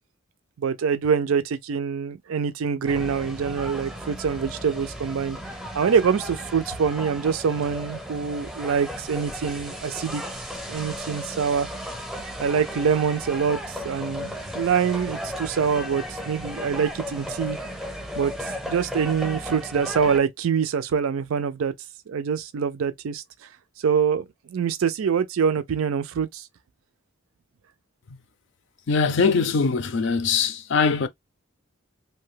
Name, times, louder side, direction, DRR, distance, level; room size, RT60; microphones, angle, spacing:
voice 1, 0.6-5.4 5.7-10.2 10.7-11.7 12.4-17.6 18.2-21.7 22.1-23.2 23.8-26.4, right 6 dB, 80° right, 0.4 m, -25 dB
sound 1, 2.9-20.2, equal, ahead, 0.6 m, -35 dB
voice 2, 28.9-31.1, left 5 dB, 60° left, 0.4 m, -22 dB
2.7 x 2.2 x 3.1 m
head